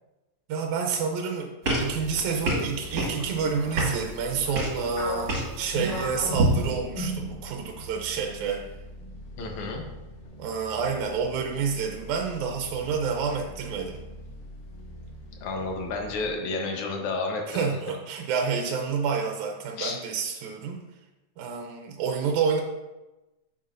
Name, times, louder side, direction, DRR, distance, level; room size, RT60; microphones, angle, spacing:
voice 1, 0.5-1.5 1.8-8.7 10.4-14.0 17.5-20.8 21.4-22.6, right 5 dB, 85° right, 2 dB, 2.1 m, -29 dB
sound 1, 1.6-6.7, right 1 dB, 45° right, 2.1 m, -29 dB
sound 2, 1.7-16.3, equal, 65° left, 1.9 m, -44 dB
sound 3, 5.0-7.8 8.1-8.4 9.0-9.5, equal, 45° left, 1.7 m, -35 dB
voice 2, 9.4-9.8 15.4-17.7 19.8-19.9, left 3 dB, 85° left, 2 dB, 2.5 m, -31 dB
9.5 x 6.2 x 2.6 m, 1.1 s
omnidirectional pair, 3.3 m